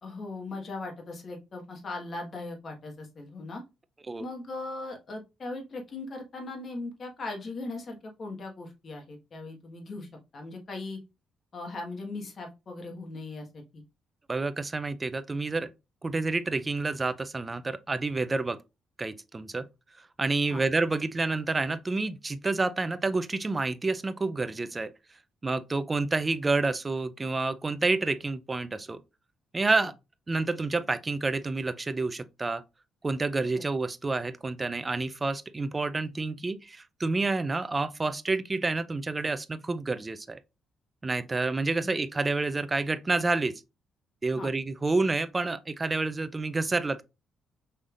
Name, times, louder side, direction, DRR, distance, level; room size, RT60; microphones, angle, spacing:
voice 1, 0.0-3.6 4.2-11.0 11.5-13.8 20.5-20.6 29.8-29.9 33.5-33.6 41.8-41.9 44.3-44.5, left 2 dB, 45° left, 1.5 m, -39 dB
voice 2, 14.3-15.7 16.0-18.6 19.0-19.7 20.2-24.9 25.4-29.0 29.5-29.9 30.3-32.6 33.0-40.4 41.0-43.6 44.2-47.0, right 3 dB, 25° right, 0.4 m, -29 dB
5.5 x 3.3 x 2.5 m
cardioid pair, 90°, 0 cm